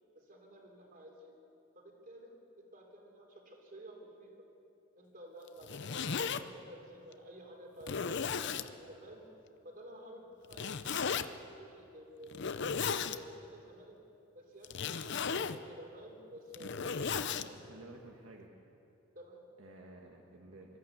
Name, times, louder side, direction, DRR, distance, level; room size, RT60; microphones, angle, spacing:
voice 1, 0.1-1.3 1.8-2.3 2.6-4.5 5.0-9.2 9.6-14.0 14.3-17.6 19.2-19.4, equal, 40° right, 1 dB, 3.4 m, -52 dB
Zipper (clothing), 5.5-6.4 7.1-7.2 7.8-8.7 10.5-11.3 12.3-13.2 14.6-15.6 16.4-17.5, left 6 dB, 55° left, 0.7 m, -35 dB
voice 2, 17.4-18.5 19.6-20.8, right 2 dB, 70° right, 1 dB, 1.6 m, -53 dB
23.0 x 14.0 x 8.2 m, 2.8 s
head